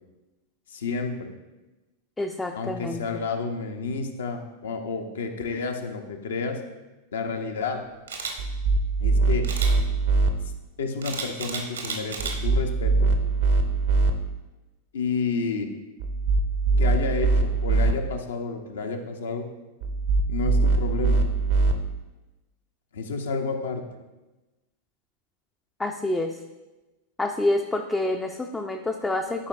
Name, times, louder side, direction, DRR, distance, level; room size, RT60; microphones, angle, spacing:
voice 1, 0.7-1.3 2.5-6.6 7.1-7.8 9.0-9.5 10.8-13.1 14.9-15.7 16.8-19.5 20.3-21.2 22.9-23.8, left 4 dB, 65° left, 5 dB, 0.8 m, -30 dB
voice 2, 2.2-3.0 25.8-26.3 27.2-29.5, left 2 dB, 10° left, 4 dB, 0.4 m, -27 dB
Camera, 8.1-8.3 9.4-9.7 11.0-12.3 12.8-13.1, right 5 dB, 70° right, 1.0 m, -32 dB
sound 1, 8.4-10.3 12.2-14.1 16.0-17.9 19.8-21.7, right 3 dB, 50° right, 0.6 m, -22 dB
11.0 x 5.1 x 2.5 m, 1.1 s
figure-of-eight pair, 90°, 0 cm